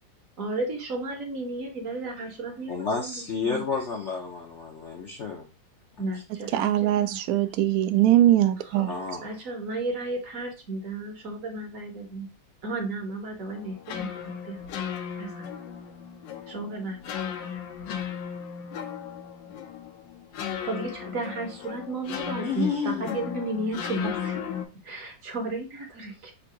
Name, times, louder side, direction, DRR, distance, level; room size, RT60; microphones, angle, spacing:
voice 1, 0.4-3.6 6.0-7.2 8.6-8.9 9.2-12.3 12.6-14.6 15.2-15.4 16.5-17.1 20.6-24.5 24.8-26.3, right 2 dB, 55° right, 1.3 m, -33 dB
voice 2, 2.7-5.5 8.8-9.3 22.4-23.2, left 5 dB, 60° left, 0.8 m, -31 dB
voice 3, 6.5-8.9, right 13 dB, 70° right, 0.9 m, -21 dB
sound 1, 13.5-24.7, left 8 dB, 80° left, 1.3 m, -36 dB
3.8 x 2.6 x 4.6 m
omnidirectional pair, 1.9 m